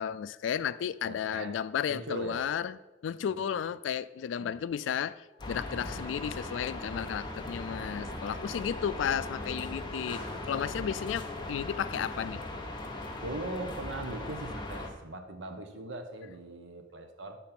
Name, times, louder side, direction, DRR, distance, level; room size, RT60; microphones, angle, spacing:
voice 1, 0.0-12.4, left 8 dB, 75° left, 0.3 m, -33 dB
voice 2, 1.0-1.6 1.9-2.4 3.3-3.4 4.4-4.6 5.7-6.0 8.0-8.8 10.5-11.0 13.2-17.4, right 2 dB, 75° right, 1.0 m, -41 dB
sound 1, 5.4-14.9, left 2 dB, 25° left, 1.1 m, -39 dB
8.8 x 4.1 x 5.9 m
head